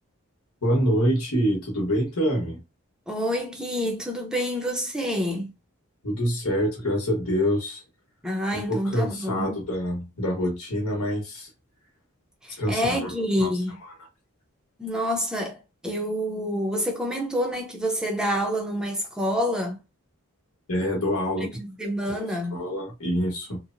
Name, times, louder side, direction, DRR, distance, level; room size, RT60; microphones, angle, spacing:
voice 1, 0.6-2.6 6.0-7.8 8.5-11.5 12.6-13.5 20.7-21.5 22.1-22.2 22.5-23.6, equal, 80° left, 1.0 m, -26 dB
voice 2, 3.1-5.5 8.2-9.6 12.4-13.8 14.8-19.8 21.6-22.6, equal, 5° right, 0.6 m, -27 dB
2.9 x 2.0 x 2.5 m
head